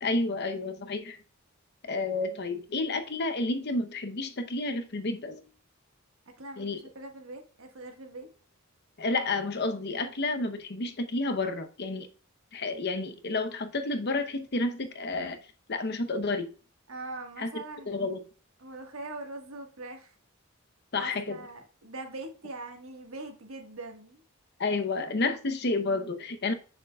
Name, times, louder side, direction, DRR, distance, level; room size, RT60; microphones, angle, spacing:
voice 1, 0.0-1.2 1.8-5.5 6.6-6.8 9.0-12.1 12.5-15.4 15.7-16.5 17.4-17.5 17.9-18.2 20.9-21.4 24.6-26.5, left 3 dB, 50° left, 0.8 m, -30 dB
voice 2, 6.4-8.3 16.9-18.1 18.6-20.1 20.9-24.2, right 2 dB, 75° right, 1.5 m, -42 dB
7.1 x 6.5 x 2.3 m
head